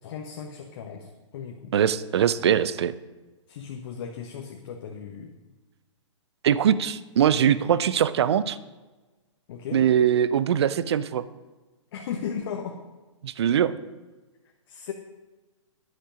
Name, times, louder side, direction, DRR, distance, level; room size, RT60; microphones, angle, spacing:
voice 1, 0.0-1.7 3.5-5.3 9.5-9.8 11.9-12.8 14.7-14.9, left 7 dB, 45° left, 3 dB, 1.1 m, -36 dB
voice 2, 1.7-2.9 6.4-8.6 9.7-11.2 13.2-13.8, right 9 dB, 55° right, 16 dB, 0.6 m, -22 dB
10.0 x 9.9 x 5.1 m, 1.2 s
figure-of-eight pair, 115°, 16 cm